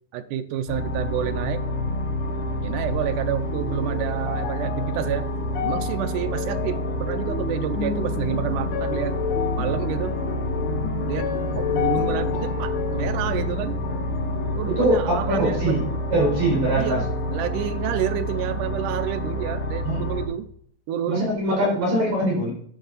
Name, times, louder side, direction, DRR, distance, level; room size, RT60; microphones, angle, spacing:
voice 1, 0.1-1.6 2.6-5.3 5.7-9.2 9.6-10.2 11.1-11.3 11.6-13.8 14.6-15.8 16.8-20.5 20.9-21.4, right 10 dB, 80° right, 9 dB, 1.9 m, -29 dB
sound 1, 0.7-20.3, equal, 50° left, 2.1 m, -28 dB
sound 2, 3.1-16.6 16.9-17.8 18.5-18.6, left 8 dB, 65° left, 2.4 m, -32 dB
voice 2, 14.8-17.0 19.9-20.0 21.1-22.5, right 1 dB, 50° right, -2 dB, 5.7 m, -22 dB
11.5 x 7.2 x 3.9 m, 0.64 s
omnidirectional pair, 4.3 m